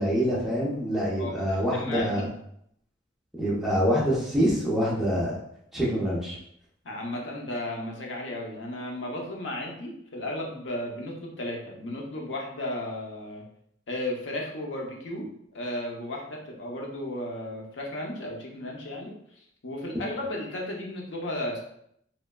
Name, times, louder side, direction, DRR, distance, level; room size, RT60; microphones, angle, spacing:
voice 1, 0.0-2.3 3.4-5.3 5.7-6.4, equal, ahead, -7 dB, 0.7 m, -25 dB
voice 2, 1.2-2.2 6.8-13.4 13.9-21.6, left 1 dB, 80° left, -1 dB, 0.6 m, -34 dB
3.1 x 2.2 x 2.3 m, 0.71 s
head